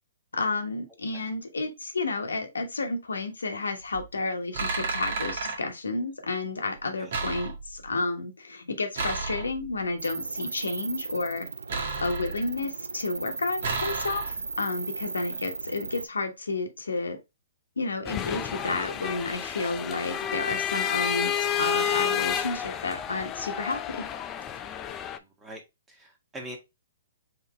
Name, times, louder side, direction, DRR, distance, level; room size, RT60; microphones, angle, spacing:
voice 1, 0.3-11.5 12.0-17.2 17.8-24.1, left 3 dB, 90° left, 1.2 m, -31 dB
sound 1, 3.8-4.1 4.5-5.6 7.1-7.9 8.9-9.8 11.7-12.6 13.6-14.6, right 4 dB, 60° right, 1.9 m, -32 dB
sound 2, 10.0-16.1, right 4 dB, 90° right, 0.4 m, -36 dB
sound 3, 18.0-25.2, left 8 dB, 20° left, 0.5 m, -30 dB
voice 2, 25.9-26.6, right 1 dB, 10° right, 1.5 m, -42 dB
4.2 x 3.8 x 3.0 m
hypercardioid pair, 135°, 0 cm